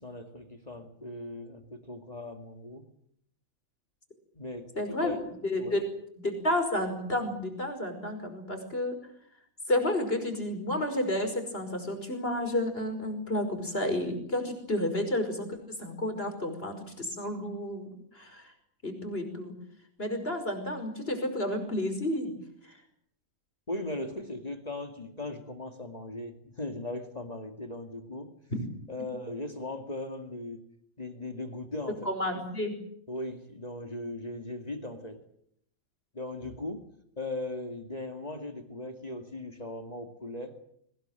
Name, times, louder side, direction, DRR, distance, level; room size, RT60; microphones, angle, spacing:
voice 1, 0.0-2.9 4.3-5.2 5.6-5.8 23.7-28.3 28.9-30.6 31.0-32.0 33.1-35.2 36.1-36.9 37.2-40.5, left 2 dB, 30° left, 6 dB, 2.4 m, -38 dB
voice 2, 4.7-5.1 5.4-5.8 6.2-9.0 9.7-18.5 18.8-19.5 20.0-22.3 22.6-22.8 28.5-28.7 32.0-32.7, left 1 dB, 45° left, 6 dB, 5.7 m, -31 dB
24.0 x 18.5 x 9.1 m, 0.71 s
omnidirectional pair, 1.4 m